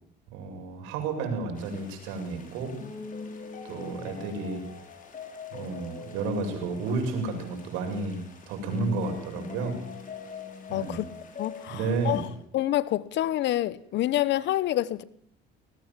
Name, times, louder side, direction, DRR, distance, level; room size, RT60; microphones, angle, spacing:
voice 1, 0.3-2.8 3.6-4.6 5.5-8.2 8.5-9.8 10.7-11.0 11.7-12.2, right 4 dB, 80° right, 7.6 m, -31 dB
sound 1, 1.6-12.3, left 5 dB, 40° left, 6.2 m, -42 dB
voice 2, 10.7-11.1 11.4-12.2 12.5-15.0, left 14 dB, 60° left, 1.2 m, -27 dB
20.5 x 20.0 x 7.6 m
supercardioid pair, 95°, 20 cm